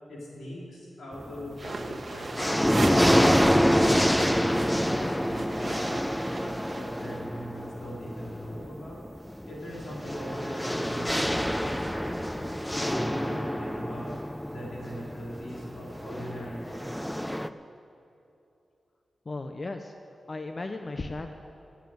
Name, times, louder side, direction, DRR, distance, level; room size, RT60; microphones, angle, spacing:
voice 1, 0.1-3.3 3.7-9.0 9.5-14.2 14.5-17.0, equal, 90° left, -5 dB, 3.9 m, -40 dB
sound 1, 1.1-1.7 2.1-17.5, equal, 5° left, 0.5 m, -27 dB
sound 2, 1.5-3.7 4.0-7.1, right 2 dB, 40° right, 1.2 m, -36 dB
voice 2, 19.2-19.9 20.3-21.3, left 2 dB, 40° left, 6 dB, 0.7 m, -35 dB
15.5 x 7.3 x 9.2 m, 2.8 s
cardioid pair, 70°, 0 cm